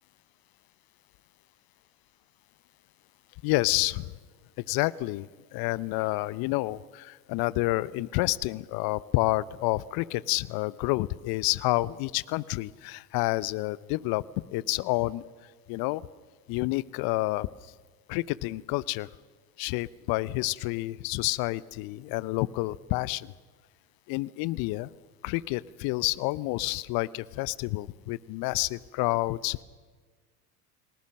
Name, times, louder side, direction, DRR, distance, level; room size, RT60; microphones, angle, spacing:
voice 1, 3.4-4.1 4.7-14.2 14.5-15.3 15.7-16.1 16.5-17.5 18.1-19.1 19.6-23.3 24.1-24.9 25.2-29.6, left 20 dB, 50° left, 20 dB, 0.8 m, -29 dB
29.5 x 19.5 x 6.4 m, 1.5 s
hypercardioid pair, 70°, 46 cm